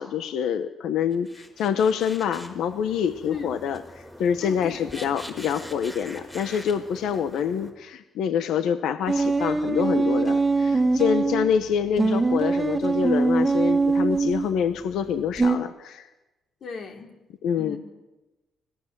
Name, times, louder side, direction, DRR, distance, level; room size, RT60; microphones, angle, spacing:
voice 1, 0.0-3.8 4.2-16.1 17.4-17.8, left 8 dB, 80° left, 11 dB, 1.2 m, -26 dB
sound 1, 1.1-7.7, equal, 5° left, 4.3 m, -44 dB
voice 2, 3.3-3.6 4.4-5.2 11.4-11.6 16.6-17.1 17.6-17.8, left 5 dB, 60° left, 4 dB, 3.7 m, -37 dB
sound 2, 9.1-11.5 12.0-14.5 15.4-15.6, right 3 dB, 15° right, 1.9 m, -22 dB
25.0 x 18.5 x 7.6 m, 1.1 s
cardioid pair, 90°, 0 cm